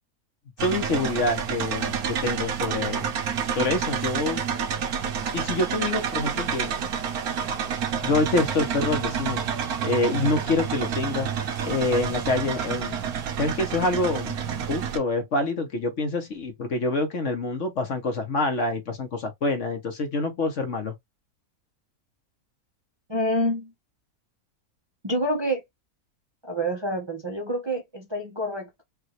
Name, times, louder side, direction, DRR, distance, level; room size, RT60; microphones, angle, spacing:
voice 1, 0.6-3.1 3.5-4.4 5.3-6.7 8.0-9.4 9.8-13.0 13.4-14.4 14.7-20.9, left 2 dB, 55° left, 1.3 m, -26 dB
sound 1, 0.6-15.0, right 7 dB, 80° right, 1.3 m, -29 dB
voice 2, 23.1-23.7 25.0-25.6 26.4-28.8, equal, 20° right, 0.8 m, -27 dB
4.9 x 2.6 x 3.0 m
omnidirectional pair, 1.6 m